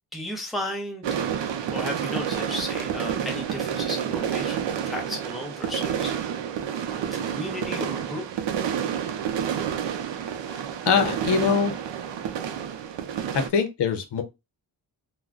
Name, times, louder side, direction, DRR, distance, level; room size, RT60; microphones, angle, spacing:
voice 1, 0.1-1.1 1.7-6.1 6.9-8.2, left 1 dB, ahead, 0.7 m, -34 dB
sound 1, 1.0-13.5, right 8 dB, 80° right, 0.5 m, -29 dB
voice 2, 10.5-11.7 13.3-14.2, left 6 dB, 70° left, 0.7 m, -23 dB
2.3 x 2.2 x 3.6 m
wide cardioid pair, 125°, 43 cm